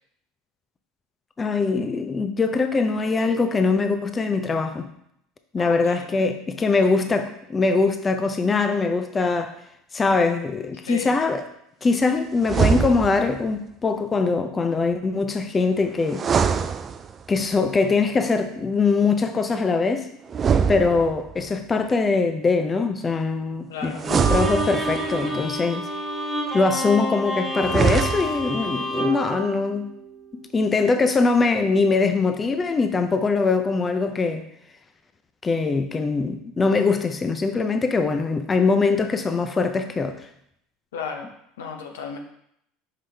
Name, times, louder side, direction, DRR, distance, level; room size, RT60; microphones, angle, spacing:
voice 1, 1.4-4.9 5.5-9.6 9.9-11.4 11.8-16.3 17.3-20.1 20.7-25.9 26.5-29.9 30.3-34.5 35.4-40.3, left 4 dB, 25° left, 8 dB, 0.5 m, -22 dB
voice 2, 5.6-6.2 10.9-11.1 23.7-24.0 40.9-41.3 41.6-42.2, left 6 dB, 80° left, 4 dB, 0.8 m, -34 dB
sound 1, 12.4-13.4 16.1-17.4 20.3-21.5 24.0-25.2 27.6-28.6, right 6 dB, 35° right, 0.4 m, -23 dB
Bowed string instrument, 24.0-30.3, right 1 dB, 5° right, 1.4 m, -29 dB
5.7 x 5.1 x 3.4 m, 0.74 s
hypercardioid pair, 80°, 0 cm